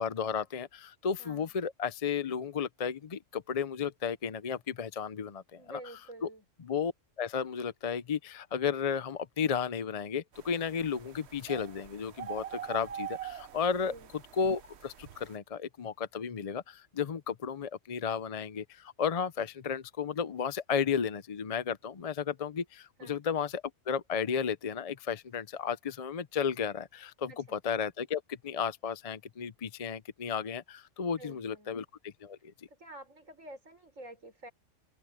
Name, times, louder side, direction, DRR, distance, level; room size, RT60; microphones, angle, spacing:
voice 1, 0.0-5.8 6.2-6.3 6.6-6.9 7.2-13.9 14.4-32.4, left 6 dB, 45° left, 0.5 m, -33 dB
voice 2, 1.2-1.5 5.5-6.4 13.8-14.1 23.0-23.2 27.3-27.6 31.1-31.8 32.7-34.5, right 1 dB, 80° right, 5.9 m, -49 dB
sound 1, 10.3-15.4, right 9 dB, 60° right, 1.1 m, -44 dB
omnidirectional pair, 1.3 m